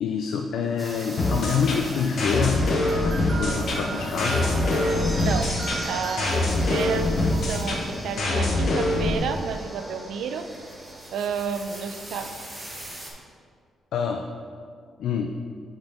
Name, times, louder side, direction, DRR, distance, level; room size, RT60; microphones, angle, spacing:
voice 1, 0.0-2.6 3.0-4.5 13.9-14.3 15.0-15.3, left 6 dB, 70° left, 4 dB, 0.3 m, -26 dB
sound 1, 0.8-13.1, right 1 dB, 10° right, 0.8 m, -39 dB
sound 2, 1.2-9.2, left 2 dB, 45° left, 0.8 m, -24 dB
sound 3, 1.4-6.4, right 3 dB, 35° right, 1.1 m, -38 dB
voice 2, 5.0-5.6 5.8-10.5 11.1-12.3, right 6 dB, 80° right, 8 dB, 0.4 m, -31 dB
7.7 x 4.4 x 3.5 m, 2.1 s
cardioid pair, 175°, 0 cm